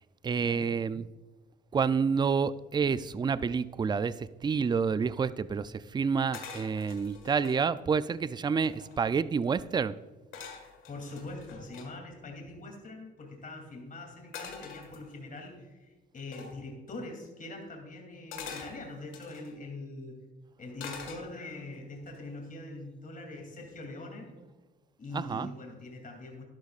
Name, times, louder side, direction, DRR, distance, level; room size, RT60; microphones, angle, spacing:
voice 1, 0.2-1.1 1.7-10.0 25.1-25.5, right 5 dB, 20° right, 0.4 m, -29 dB
sound 1, 6.3-7.6 8.2-8.3 8.5-9.1 10.3-11.9 14.3-15.4 16.3-16.6 18.3-19.5 20.8-21.6 22.1-22.4, left 6 dB, 80° left, 1.9 m, -45 dB
voice 2, 10.9-20.1 20.6-24.3 25.0-26.5, left 2 dB, 45° left, 2.9 m, -43 dB
12.0 x 11.5 x 2.4 m
cardioid pair, 90°, 20 cm